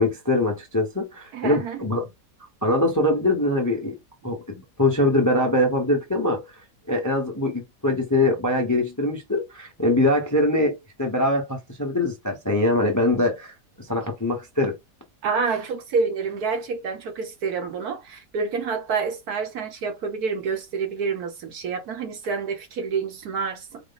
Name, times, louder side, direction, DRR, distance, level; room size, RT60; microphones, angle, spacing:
voice 1, 0.0-2.1 2.6-4.0 4.2-6.4 6.9-14.7, left 1 dB, 15° left, 0.7 m, -23 dB
voice 2, 1.3-1.8 15.2-23.8, right 5 dB, 65° right, 1.4 m, -28 dB
4.8 x 2.1 x 3.9 m
omnidirectional pair, 1.9 m